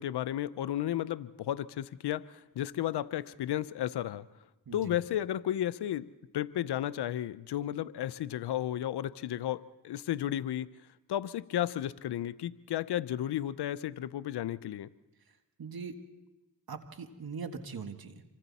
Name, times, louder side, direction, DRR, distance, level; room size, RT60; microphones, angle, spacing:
voice 1, 0.0-4.3 4.7-6.1 6.3-10.7 11.1-14.9, left 12 dB, 85° left, 16 dB, 0.6 m, -33 dB
voice 2, 4.7-5.0 15.6-16.0 16.7-18.2, right 5 dB, 65° right, 7 dB, 1.8 m, -41 dB
27.0 x 24.0 x 4.2 m, 1.0 s
cardioid pair, 50°, 39 cm